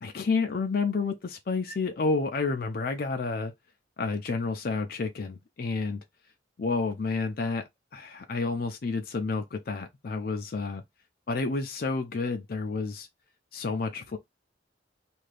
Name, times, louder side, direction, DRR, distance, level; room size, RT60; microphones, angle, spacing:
voice 1, 0.0-3.5 4.0-6.0 6.6-10.8 11.3-13.1 13.5-14.2, left 4 dB, 50° left, 0.4 m, -30 dB
2.7 x 2.5 x 3.2 m
head